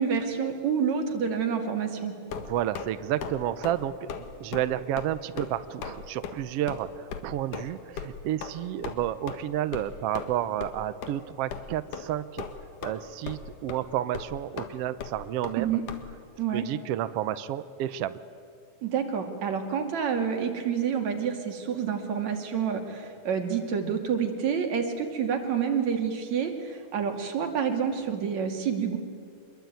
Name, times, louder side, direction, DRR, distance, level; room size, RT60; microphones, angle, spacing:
voice 1, 0.0-2.2 15.6-15.8 16.4-16.6 18.8-29.0, right 7 dB, 60° right, 4 dB, 3.7 m, -28 dB
sound 1, 2.3-2.9 3.2-3.4 3.6-3.8 4.1-4.3 4.5-4.7 5.0-5.1 5.4-5.5 5.8-6.0 6.2-6.3 6.7-6.8 7.1-7.2 7.5-7.7 8.0-8.1 8.4-8.5 8.8-9.0 9.3-9.4 9.7-9.9 10.1-10.3 10.6-10.7 11.0-11.1 11.5-11.6 11.9-12.1 12.4-13.0 13.3-13.4 13.7-13.8 14.1-14.3 14.6-14.7 15.0-15.1 15.4-15.6 15.9-16.0, left 7 dB, 75° left, 3.2 m, -36 dB
voice 2, 2.3-12.5 12.8-15.7 16.5-18.2, right 12 dB, 75° right, 13 dB, 1.4 m, -31 dB
26.0 x 22.0 x 9.3 m, 2.2 s
omnidirectional pair, 3.7 m